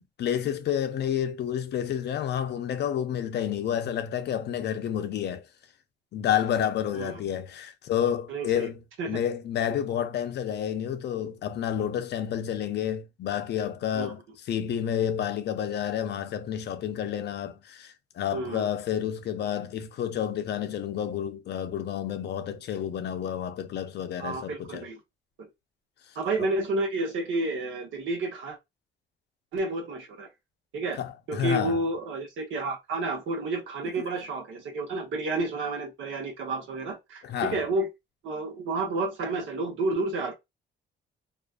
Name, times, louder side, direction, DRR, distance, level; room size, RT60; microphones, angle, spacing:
voice 1, 0.2-5.5 6.1-8.8 9.1-14.2 14.5-24.9 26.4-26.5 30.9-31.8 33.8-33.9 37.2-37.6, left 9 dB, 60° left, 0.4 m, -30 dB
voice 2, 8.3-8.7 9.0-9.2 13.9-14.1 18.3-18.7 24.2-25.0 26.2-28.6 29.5-30.3 30.7-31.0 31.3-37.9 38.2-40.3, right 2 dB, 75° right, 0.9 m, -30 dB
2.4 x 2.2 x 2.4 m
cardioid pair, 90°, 20 cm